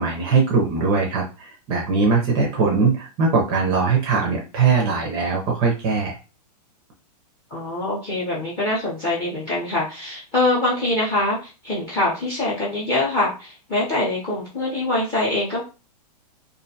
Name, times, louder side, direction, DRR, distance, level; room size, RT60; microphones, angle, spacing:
voice 1, 0.0-6.2, right 4 dB, 20° right, -1 dB, 0.5 m, -21 dB
voice 2, 7.5-15.6, left 2 dB, 20° left, -5 dB, 0.6 m, -24 dB
2.5 x 2.2 x 2.7 m, 0.31 s
hypercardioid pair, 160°, 21 cm